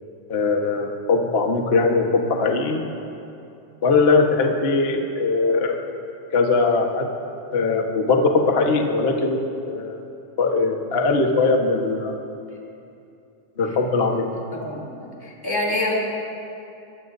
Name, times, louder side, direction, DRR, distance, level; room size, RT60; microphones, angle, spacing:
voice 1, 0.3-2.8 3.8-5.8 6.3-7.1 7.5-10.0 10.4-12.1 13.6-14.3, left 3 dB, 65° left, 1 dB, 0.6 m, -20 dB
voice 2, 14.5-15.9, left 2 dB, 5° left, -4 dB, 2.9 m, -27 dB
23.5 x 22.0 x 2.8 m, 2.7 s
omnidirectional pair, 3.5 m